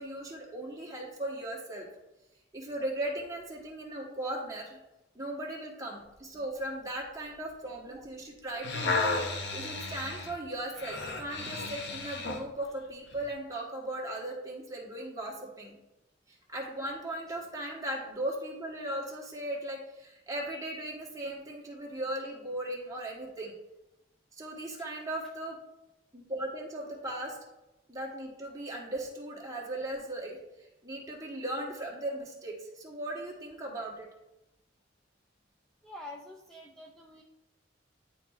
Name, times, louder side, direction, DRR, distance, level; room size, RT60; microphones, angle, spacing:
voice 1, 0.0-1.9 2.5-4.8 5.1-9.2 9.5-15.7 16.3-23.5 24.3-25.6 26.1-27.4 27.9-34.1, right 1 dB, 15° right, -2 dB, 1.3 m, -38 dB
sound 1, 8.4-12.5 13.1-13.2, left 3 dB, 60° left, 0.7 m, -33 dB
voice 2, 35.8-37.2, left 1 dB, 5° left, -1 dB, 0.4 m, -47 dB
10.5 x 4.1 x 2.4 m, 0.97 s
head